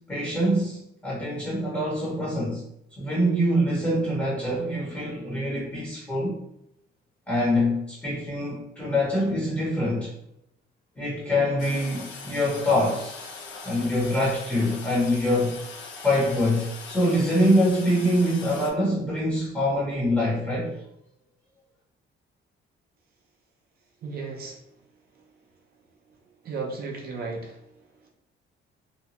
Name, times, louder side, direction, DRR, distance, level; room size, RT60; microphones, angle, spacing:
voice 1, 0.0-2.6 3.0-6.3 7.3-10.1 11.0-13.3 13.6-15.6 16.0-20.8, equal, 10° left, -6 dB, 0.7 m, -24 dB
Toilet flush, 11.6-18.7, left 4 dB, 70° left, 0.6 m, -41 dB
voice 2, 24.0-24.6 26.4-27.6, right 4 dB, 50° right, 0 dB, 0.5 m, -34 dB
2.8 x 2.2 x 2.8 m, 0.78 s
cardioid pair, 155°, 21 cm